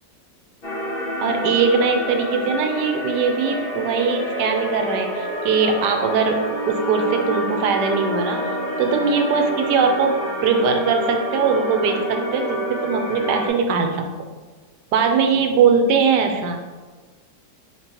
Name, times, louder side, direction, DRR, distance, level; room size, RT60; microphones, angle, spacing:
sound 1, 0.6-13.5, equal, 40° left, 1.0 m, -27 dB
voice 1, 1.2-8.4 8.8-14.1 14.9-16.6, right 5 dB, 75° right, 5 dB, 1.2 m, -20 dB
4.4 x 4.0 x 2.9 m, 1.3 s
omnidirectional pair, 1.9 m